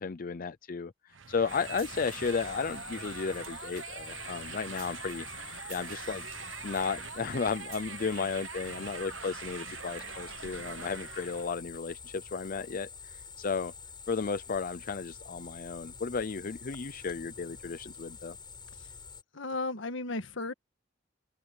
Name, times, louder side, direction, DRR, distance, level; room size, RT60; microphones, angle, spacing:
voice 1, 0.0-5.3 5.7-6.3 6.6-13.7 14.1-18.4, left 5 dB, 45° left, 0.5 m, -34 dB
sound 1, 1.1-11.5, right 7 dB, 85° right, 1.0 m, -43 dB
sound 2, 1.5-19.2, left 5 dB, 25° left, 7.0 m, -47 dB
voice 2, 19.3-20.5, left 2 dB, 80° left, 1.6 m, -35 dB
head